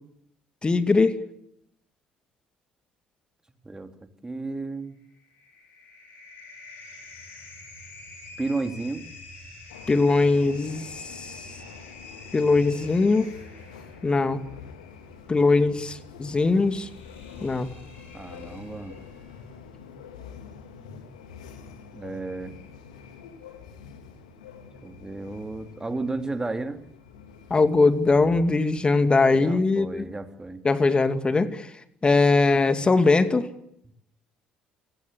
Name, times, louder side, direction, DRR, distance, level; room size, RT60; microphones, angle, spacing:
voice 1, 0.6-1.2 9.9-11.4 12.3-13.3 14.0-14.4 15.3-16.9 17.4-17.7 27.5-30.1 30.6-31.7 32.0-33.5, left 3 dB, 25° left, 11 dB, 2.4 m, -21 dB
voice 2, 4.2-5.0 8.4-9.0 18.1-19.0 21.9-22.5 24.8-26.8 29.3-30.6, right 3 dB, 15° right, 8 dB, 2.9 m, -32 dB
sound 1, 5.0-19.6, left 3 dB, 55° left, 7.8 m, -47 dB
sound 2, 9.7-28.9, left 6 dB, 75° left, 2.6 m, -46 dB
29.5 x 18.5 x 8.3 m, 0.75 s
figure-of-eight pair, 50°, 4 cm